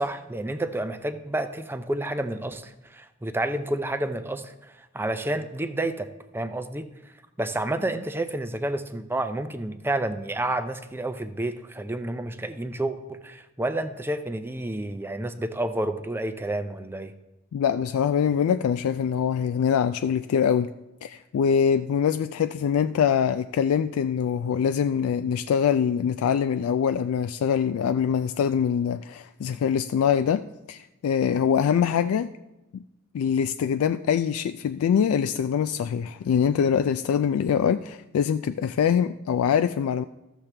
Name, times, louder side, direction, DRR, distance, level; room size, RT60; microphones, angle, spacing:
voice 1, 0.0-7.1 7.4-17.1, right 1 dB, 10° right, 9 dB, 0.5 m, -30 dB
voice 2, 17.5-20.7 21.0-32.3 32.7-32.8 33.1-40.0, left 7 dB, 90° left, 12 dB, 0.3 m, -24 dB
13.5 x 7.2 x 3.3 m, 0.98 s
head